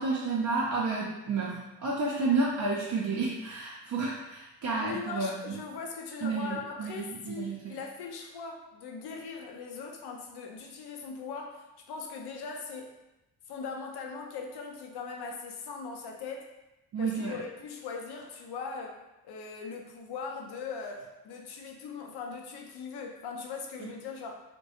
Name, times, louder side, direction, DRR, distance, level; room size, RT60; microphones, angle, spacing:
voice 1, 0.0-5.6 6.2-7.6 16.9-17.4 23.8-23.9, right 3 dB, 40° right, -5 dB, 0.5 m, -31 dB
voice 2, 4.7-12.9 13.5-16.5 17.0-19.0 19.2-24.4, left 5 dB, 55° left, 2 dB, 0.6 m, -40 dB
2.3 x 2.2 x 2.8 m, 0.97 s
hypercardioid pair, 50°, 46 cm